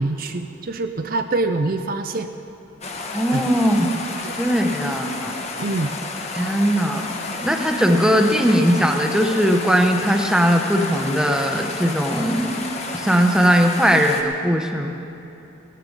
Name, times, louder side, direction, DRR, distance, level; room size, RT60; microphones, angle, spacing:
voice 1, 0.0-2.3 3.3-3.5 4.2-4.4 5.6-5.9, right 2 dB, 45° right, 7 dB, 0.5 m, -25 dB
sound 1, 2.8-14.2, left 3 dB, 30° left, 1.0 m, -31 dB
voice 2, 3.1-3.9 4.4-5.3 6.3-7.1 7.4-12.6 12.9-14.9, equal, 5° right, 3 dB, 0.8 m, -19 dB
18.0 x 13.0 x 5.2 m, 2.8 s
head